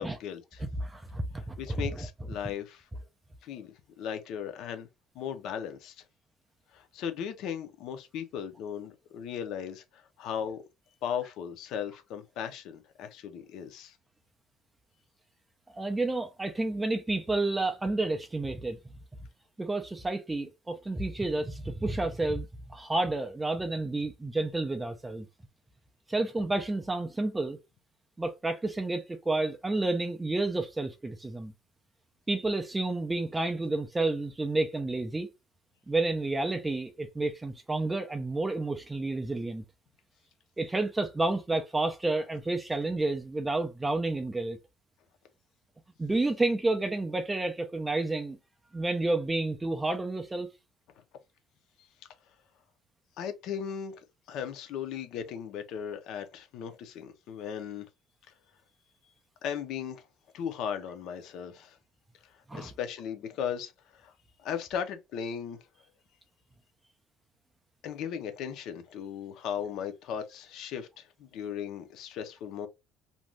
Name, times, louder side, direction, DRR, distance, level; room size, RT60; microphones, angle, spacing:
voice 1, 0.0-0.6 1.6-2.8 3.4-4.9 5.1-6.0 6.7-10.6 11.0-14.0 53.2-53.9 54.3-57.9 59.4-60.0 60.3-61.8 62.5-64.1 64.4-65.6 67.8-72.7, left 8 dB, 55° left, 0.5 m, -37 dB
voice 2, 0.6-2.1 15.7-18.8 19.6-25.3 26.1-27.6 28.2-31.5 32.3-35.3 35.9-39.6 40.6-44.6 46.0-48.4 48.7-50.5 62.5-62.7, right 2 dB, 10° right, 0.3 m, -30 dB
2.5 x 2.2 x 3.0 m
cardioid pair, 170°, 0 cm